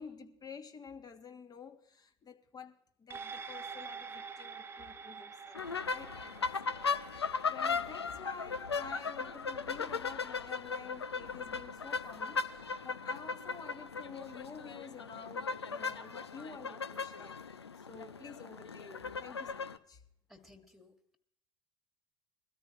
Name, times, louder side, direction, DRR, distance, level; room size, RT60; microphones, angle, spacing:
voice 1, 0.0-6.7 7.1-20.0, left 5 dB, 30° left, 1.4 m, -50 dB
sound 1, 3.1-11.8 12.2-12.3, right 5 dB, 15° right, 1.0 m, -49 dB
sound 2, 5.5-19.8, left 5 dB, 90° left, 0.5 m, -37 dB
voice 2, 20.3-21.2, left 2 dB, ahead, 1.8 m, -59 dB
22.0 x 13.5 x 3.1 m
figure-of-eight pair, 65°, 13 cm